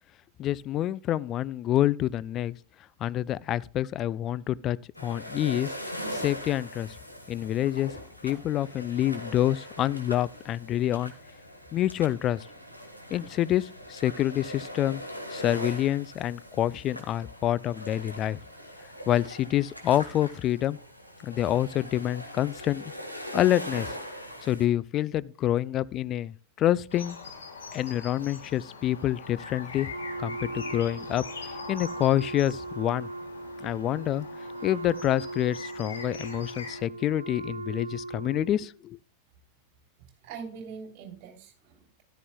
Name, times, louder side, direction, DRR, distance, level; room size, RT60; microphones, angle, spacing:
voice 1, 0.4-2.6 3.0-5.7 6.1-6.9 7.3-7.9 8.2-11.1 11.7-12.5 13.1-15.0 15.3-18.4 19.1-20.8 21.2-22.9 23.3-23.9 24.4-27.2 27.7-29.9 30.2-31.2 31.7-33.1 33.6-34.2 34.6-39.0, left 12 dB, 30° left, 0.3 m, -27 dB
sound 1, 4.9-24.7, equal, 90° left, 1.5 m, -41 dB
sound 2, 26.9-36.8, left 5 dB, 70° left, 1.5 m, -43 dB
Wind instrument woodwind instrument, 29.9-38.7, right 2 dB, 80° right, 0.4 m, -39 dB
voice 2, 40.2-42.0, right 5 dB, 40° right, 3.3 m, -43 dB
13.5 x 11.5 x 2.3 m
figure-of-eight pair, 90°, 0 cm